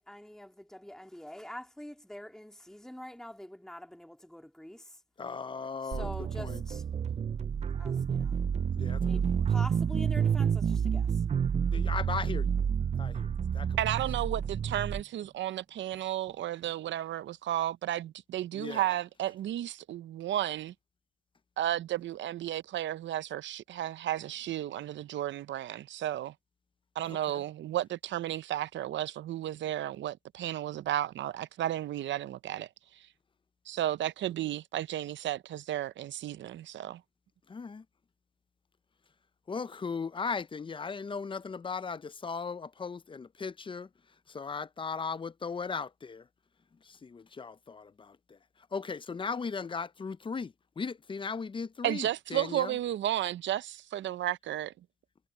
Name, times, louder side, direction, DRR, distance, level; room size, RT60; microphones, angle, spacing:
voice 1, 0.0-4.8 5.8-6.8 7.8-8.3 9.0-11.1, left 1 dB, 5° left, 2.5 m, -45 dB
voice 2, 5.2-6.1 6.4-6.6 8.8-9.4 11.7-12.5 13.0-13.3 13.5-13.8 18.5-18.9 27.1-27.4 37.5-37.8 39.5-43.9 44.3-46.2 46.9-48.2 48.7-52.8, left 5 dB, 25° left, 0.6 m, -37 dB
sound 1, 5.9-15.0, right 7 dB, 35° right, 0.5 m, -29 dB
voice 3, 13.8-20.7 21.6-26.3 27.0-32.7 33.7-37.0 51.8-54.7, right 12 dB, 70° right, 0.7 m, -33 dB
cardioid pair, 90°, 20 cm